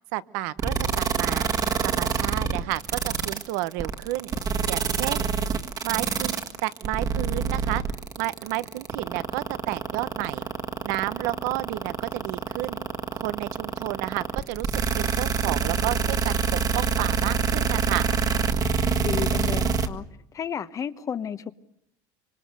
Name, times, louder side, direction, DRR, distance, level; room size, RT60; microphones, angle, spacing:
voice 1, 0.1-1.5 1.8-4.3 4.7-5.3 5.8-7.8 8.2-10.4 10.8-12.8 13.1-14.7 15.0-16.4 16.7-18.1, right 17 dB, 85° right, 0.9 m, -31 dB
sound 1, 0.6-19.9, right 6 dB, 40° right, 1.6 m, -25 dB
voice 2, 19.0-20.0 20.3-21.5, left 7 dB, 35° left, 1.1 m, -32 dB
25.5 x 25.0 x 6.7 m
supercardioid pair, 115°, 9 cm